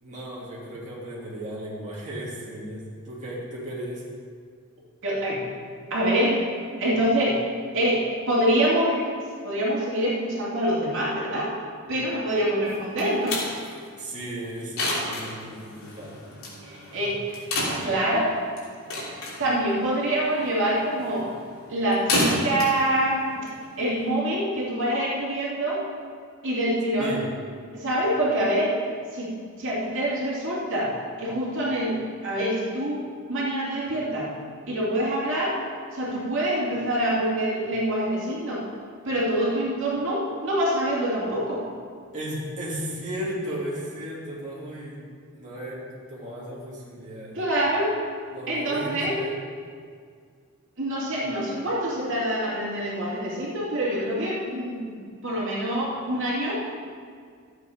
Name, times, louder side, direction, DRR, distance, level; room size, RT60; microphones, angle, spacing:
voice 1, 0.0-4.0 14.0-16.2 27.0-27.3 42.1-45.0 45.4-45.8 46.1-47.4 48.3-49.4, right 1 dB, 35° right, -7 dB, 2.6 m, -35 dB
voice 2, 5.0-5.4 5.9-6.4 6.8-7.4 7.7-9.1 9.4-11.5 11.9-13.4 16.6-17.4 17.8-18.3 19.3-21.3 21.7-23.4 23.8-25.8 26.4-27.2 27.7-28.8 29.1-29.3 29.6-34.3 34.7-35.6 35.9-38.6 39.0-41.7 47.3-47.9 48.5-49.1 50.8-55.0 55.2-56.5, right 1 dB, 60° right, -6 dB, 2.6 m, -25 dB
sound 1, 12.7-24.1, left 1 dB, 70° left, 3.3 m, -32 dB
13.0 x 8.3 x 5.0 m, 2.1 s
head